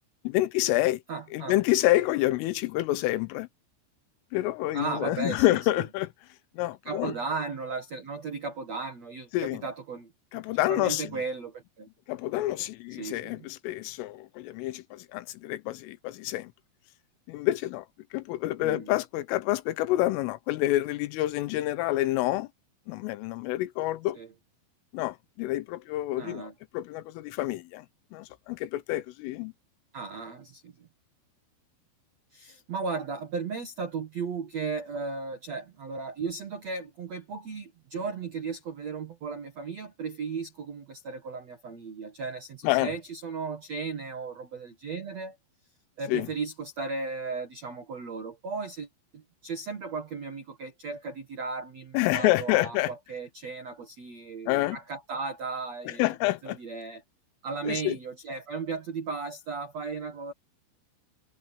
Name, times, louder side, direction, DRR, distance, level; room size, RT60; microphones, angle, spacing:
voice 1, 0.3-1.0 1.3-3.5 4.3-6.1 6.6-7.1 9.3-9.6 10.3-11.1 12.1-16.5 17.3-17.9 18.1-22.5 22.9-24.2 24.9-27.9 28.1-29.5 42.6-42.9 46.1-46.3 51.9-52.9 54.5-54.8 55.9-56.6 57.7-58.0, left 16 dB, 80° left, 3.4 m, -28 dB
voice 2, 1.1-1.6 4.7-5.6 6.8-11.9 13.0-13.5 18.6-18.9 24.1-24.3 26.2-26.5 29.9-30.9 32.3-45.3 46.0-48.9 49.1-56.1 56.4-57.0 57.4-60.3, right 4 dB, 75° right, 1.5 m, -36 dB
omnidirectional pair, 5.9 m